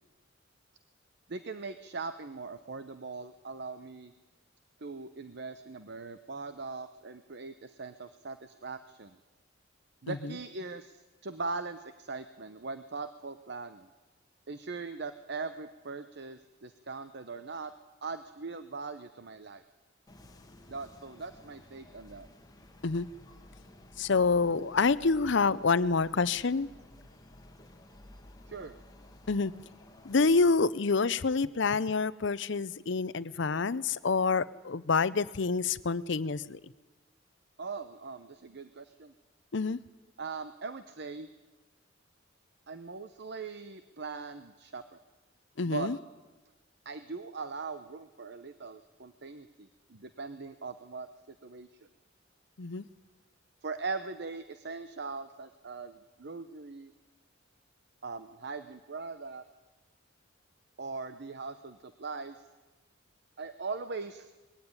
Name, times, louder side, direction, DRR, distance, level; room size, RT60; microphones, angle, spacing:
voice 1, 1.3-4.1 4.8-9.2 10.0-13.9 14.5-17.7 18.0-19.6 20.7-22.3 28.5-28.7 37.6-39.1 40.2-41.3 42.7-45.0 45.7-45.9 46.8-51.1 51.4-51.7 53.6-56.9 58.0-59.4 60.8-62.4 63.4-64.3, right 4 dB, 55° right, 11 dB, 0.8 m, -40 dB
sound 1, 20.1-30.6, left 1 dB, 20° left, 1.6 m, -54 dB
voice 2, 24.0-26.7 29.3-29.5 30.0-36.6 39.5-39.8 45.6-46.0 52.6-52.8, left 4 dB, 60° left, 18 dB, 0.7 m, -27 dB
20.5 x 16.0 x 9.7 m, 1.2 s
head